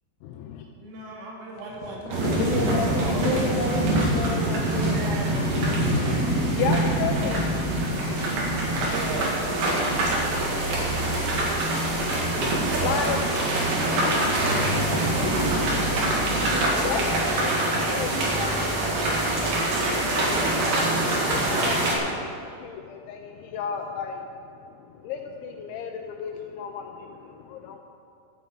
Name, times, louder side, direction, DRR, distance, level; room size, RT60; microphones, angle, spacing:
voice 1, 0.2-0.6 4.9-5.0 5.4-8.2 9.9-13.4 14.2-15.8 16.8-17.6 17.9-18.7 19.9-24.2 25.0-27.8, left 6 dB, 80° left, 3 dB, 2.8 m, -35 dB
voice 2, 0.8-3.3 4.8-5.4 8.8-9.6, right 2 dB, 75° right, -5 dB, 5.1 m, -36 dB
sound 1, 2.1-22.0, right 1 dB, 55° right, 3.2 m, -24 dB
voice 3, 2.2-5.6, left 3 dB, 65° left, -3 dB, 3.6 m, -30 dB
12.5 x 7.7 x 7.6 m, 2.4 s
omnidirectional pair, 5.9 m